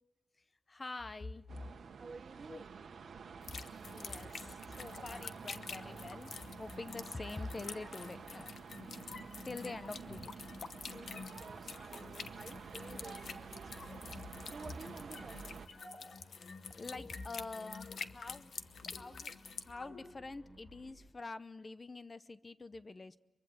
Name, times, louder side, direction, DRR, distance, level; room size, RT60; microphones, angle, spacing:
voice 1, 0.7-1.5 2.5-2.6 3.9-6.3 6.6-8.5 9.4-10.3 16.8-18.5 18.9-23.2, left 3 dB, 35° left, 14 dB, 0.7 m, -46 dB
sound 1, 1.5-15.7, right 6 dB, 90° right, 1.2 m, -50 dB
voice 2, 2.0-2.8 9.6-9.7 11.1-15.7, right 4 dB, 45° right, 9 dB, 1.2 m, -53 dB
sound 2, 3.4-19.7, left 6 dB, 85° left, 1.0 m, -48 dB
sound 3, 4.9-20.9, left 2 dB, 70° left, 4.3 m, -56 dB
23.5 x 23.5 x 7.8 m, 1.1 s
wide cardioid pair, 100°, 0 cm